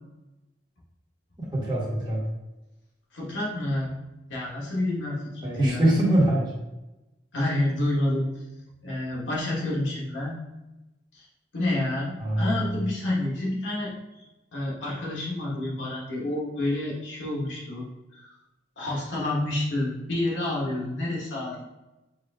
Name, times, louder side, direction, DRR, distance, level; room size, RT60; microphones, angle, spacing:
voice 1, 1.5-2.2 5.4-6.5 12.2-12.8, right 1 dB, 25° right, -5 dB, 1.4 m, -23 dB
voice 2, 3.1-3.9 4.3-5.9 7.3-8.3 8.8-10.4 11.1-11.2 11.5-13.9 14.5-17.8 18.1-18.2 18.8-21.7, left 1 dB, 85° left, -5 dB, 1.5 m, -29 dB
4.8 x 2.6 x 3.5 m, 1.0 s
head